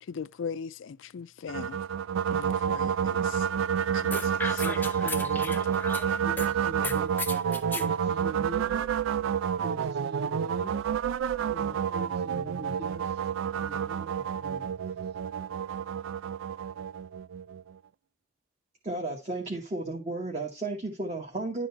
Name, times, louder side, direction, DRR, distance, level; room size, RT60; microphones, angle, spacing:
voice 1, 0.0-1.8 2.3-3.5 3.9-4.6 5.0-5.3, left 6 dB, 80° left, 0.4 m, -40 dB
sound 1, 1.5-17.7, right 8 dB, 80° right, 0.3 m, -29 dB
sound 2, 4.1-6.5 6.8-7.9, left 4 dB, 10° left, 0.5 m, -36 dB
voice 2, 4.6-5.6 6.2-7.1 7.7-8.9 9.6-10.8 11.5-13.2 13.6-14.8, right 1 dB, 55° right, 1.4 m, -42 dB
voice 3, 18.8-21.7, right 2 dB, 35° right, 1.2 m, -33 dB
10.5 x 3.9 x 4.4 m
head